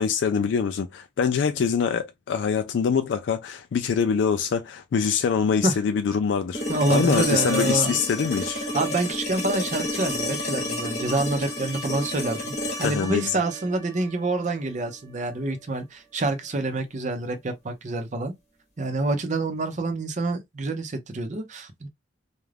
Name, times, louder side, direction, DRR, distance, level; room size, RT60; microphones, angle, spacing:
voice 1, 0.0-6.6 6.9-8.6 12.8-13.4, left 6 dB, 85° left, 0.3 m, -24 dB
sound 1, 6.5-14.6 16.7-16.8, left 1 dB, 40° left, 0.9 m, -30 dB
voice 2, 6.7-8.0 8.7-12.5 12.8-18.3 18.8-21.9, right 2 dB, 45° right, 0.6 m, -27 dB
2.4 x 2.1 x 3.2 m
head